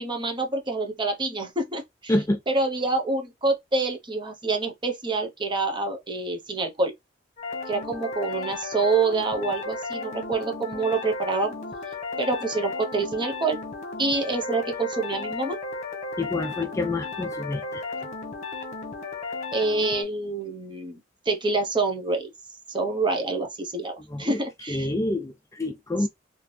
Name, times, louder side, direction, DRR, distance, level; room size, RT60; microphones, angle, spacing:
voice 1, 0.0-2.1 2.5-6.9 7.7-11.5 12.2-13.6 14.0-15.6 19.5-22.3 22.7-24.9, right 3 dB, 25° right, 0.9 m, -27 dB
voice 2, 2.1-2.4 16.2-17.8 24.1-24.4 24.7-26.1, left 2 dB, 15° left, 0.4 m, -27 dB
sound 1, 7.4-20.0, left 3 dB, 40° left, 1.2 m, -35 dB
3.4 x 2.8 x 3.2 m
head